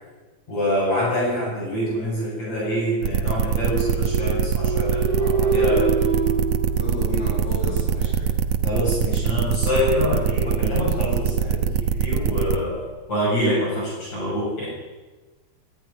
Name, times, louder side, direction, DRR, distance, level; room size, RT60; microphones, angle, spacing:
voice 1, 0.5-5.9 8.6-14.7, left 1 dB, 45° left, -6 dB, 8.1 m, -25 dB
sound 1, 3.0-12.6, right 8 dB, 70° right, 1.5 m, -22 dB
sound 2, 3.8-7.6, right 4 dB, 20° left, 5.3 m, -25 dB
voice 2, 6.7-8.3, left 1 dB, 90° left, -7 dB, 9.3 m, -31 dB
26.0 x 12.5 x 9.9 m, 1.3 s
omnidirectional pair, 4.4 m